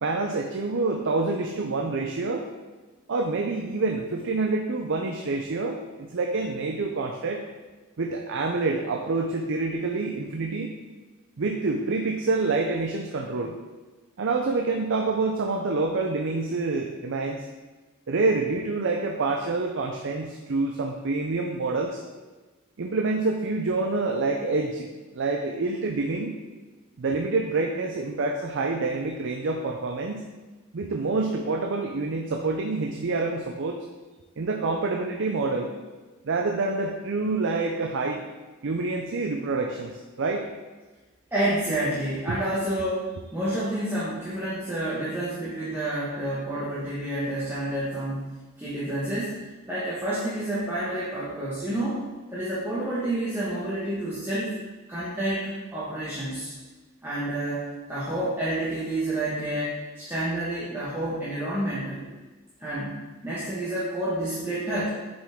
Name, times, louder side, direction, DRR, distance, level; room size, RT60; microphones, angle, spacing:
voice 1, 0.0-2.5 3.1-7.4 8.0-10.7 11.4-13.5 14.2-17.5 18.1-22.0 22.8-24.9 25.1-26.4 27.0-30.2 30.7-33.8 34.4-35.7 36.2-38.2 38.6-40.5 42.3-42.4, right 3 dB, 60° right, 2 dB, 0.5 m, -27 dB
voice 2, 41.3-49.4 49.7-52.0 52.3-54.5 54.9-56.5 57.0-62.1 62.6-63.0 63.2-64.9, right 1 dB, 10° right, -10 dB, 1.3 m, -29 dB
7.2 x 5.2 x 3.6 m, 1.3 s
head